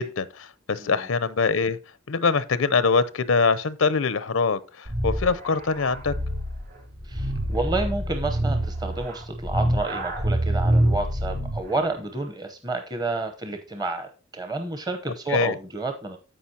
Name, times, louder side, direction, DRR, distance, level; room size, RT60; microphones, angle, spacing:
voice 1, 0.0-1.8 2.1-6.1 15.3-15.5, left 4 dB, 80° left, 0.6 m, -23 dB
sound 1, 4.9-11.7, right 1 dB, 50° right, 3.7 m, -26 dB
voice 2, 7.0-16.2, right 2 dB, 20° right, 0.8 m, -30 dB
14.0 x 5.1 x 2.8 m
head